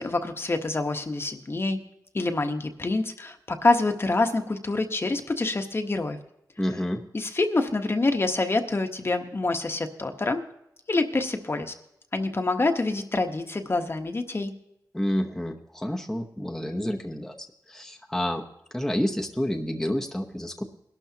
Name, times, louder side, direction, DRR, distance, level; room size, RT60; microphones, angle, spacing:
voice 1, 0.0-1.8 2.1-6.2 7.1-10.4 10.9-11.7 12.1-14.5, left 2 dB, 35° left, 6 dB, 1.1 m, -26 dB
voice 2, 6.6-7.0 14.9-17.3 17.7-18.5 18.7-20.6, equal, 5° left, 2 dB, 0.9 m, -29 dB
21.5 x 12.0 x 2.8 m, 0.81 s
wide cardioid pair, 90°, 7 cm